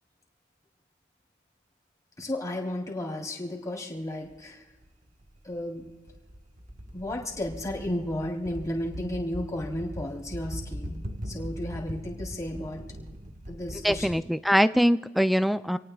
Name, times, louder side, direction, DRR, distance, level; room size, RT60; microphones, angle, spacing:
voice 1, 2.2-4.6 5.4-5.9 6.9-11.0 11.2-12.8 13.5-14.2, left 1 dB, 15° left, -2 dB, 3.5 m, -33 dB
sound 1, 4.3-4.4 4.8-14.2, equal, 40° right, 1.3 m, -40 dB
voice 2, 13.8-15.8, equal, ahead, 12 dB, 0.4 m, -23 dB
28.0 x 18.5 x 2.4 m, 1.2 s
head